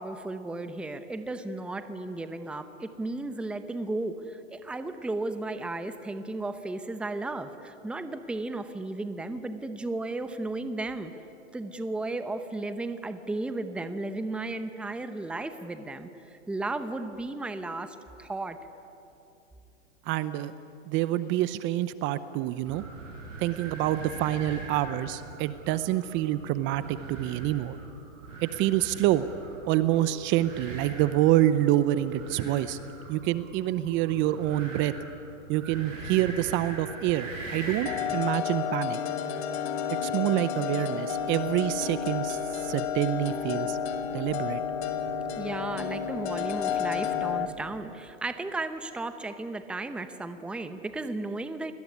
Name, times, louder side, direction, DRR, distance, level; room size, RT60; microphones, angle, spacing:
voice 1, 0.0-11.1 11.5-18.6 45.4-51.7, right 2 dB, 5° right, 10 dB, 0.8 m, -34 dB
voice 2, 20.1-20.5 20.9-22.8 23.4-27.8 28.4-29.2 29.7-32.8 33.1-34.9 35.5-39.0 40.0-43.8 44.1-44.6, right 14 dB, 30° right, 14 dB, 0.8 m, -27 dB
sound 1, 22.6-38.1, right 3 dB, 70° right, 7.7 m, -42 dB
sound 2, 37.9-47.5, left 8 dB, 50° left, 2.4 m, -31 dB
sound 3, 41.1-47.8, left 4 dB, 90° left, 7.5 m, -53 dB
29.5 x 20.5 x 9.7 m, 3.0 s
hypercardioid pair, 130°, 40 cm